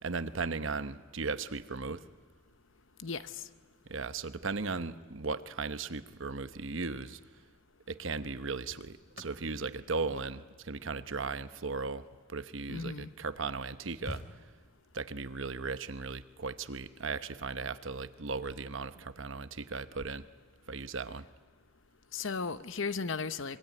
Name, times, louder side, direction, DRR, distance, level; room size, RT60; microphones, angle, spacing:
voice 1, 0.0-2.1 3.9-7.2 7.9-14.4 14.9-20.3 20.7-21.3, right 4 dB, 65° right, 1.0 m, -37 dB
voice 2, 3.0-3.4 12.7-13.1 22.1-23.6, left 4 dB, 65° left, 0.9 m, -35 dB
sound 1, 8.6-12.8 13.4-13.5 13.7-15.0 16.6-16.9, equal, 45° left, 2.6 m, -51 dB
26.0 x 23.5 x 9.2 m
head